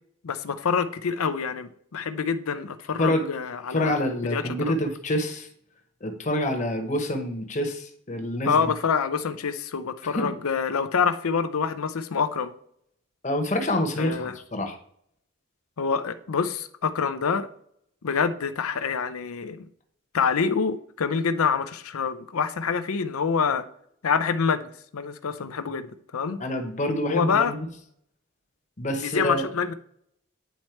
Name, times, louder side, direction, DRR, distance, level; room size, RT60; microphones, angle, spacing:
voice 1, 0.2-4.0 4.2-4.8 8.5-12.5 14.0-14.4 15.8-17.5 18.0-19.6 20.1-23.6 24.0-26.4 27.1-27.5 29.0-29.7, left 6 dB, 80° left, 11 dB, 0.6 m, -26 dB
voice 2, 3.7-5.5 6.0-8.6 10.0-10.3 13.2-14.8 26.4-27.6 28.8-29.5, left 1 dB, 35° left, 6 dB, 1.0 m, -27 dB
9.3 x 4.3 x 4.5 m, 0.67 s
head